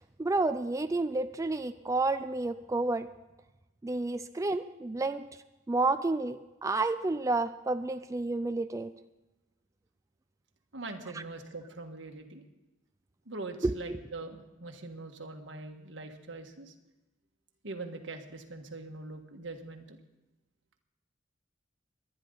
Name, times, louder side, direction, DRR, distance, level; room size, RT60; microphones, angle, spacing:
voice 1, 0.2-3.1 3.8-5.2 5.7-8.9 13.6-13.7, right 2 dB, 15° right, 10 dB, 0.4 m, -30 dB
voice 2, 10.7-12.4 13.2-16.7 17.6-20.0, right 3 dB, 80° right, 5 dB, 1.6 m, -42 dB
22.5 x 10.0 x 3.9 m, 1.0 s
head